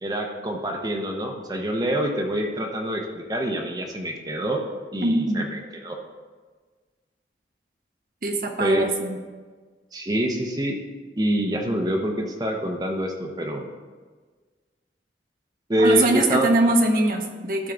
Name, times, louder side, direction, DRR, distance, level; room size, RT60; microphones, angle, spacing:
voice 1, 0.0-4.6 4.9-6.0 8.6-8.8 9.9-10.8 11.2-13.7 15.7-16.5, equal, 20° right, 2 dB, 0.7 m, -26 dB
voice 2, 5.0-5.5 8.2-9.2 15.8-17.7, right 2 dB, 50° right, 3 dB, 0.9 m, -22 dB
12.0 x 4.5 x 3.9 m, 1.4 s
head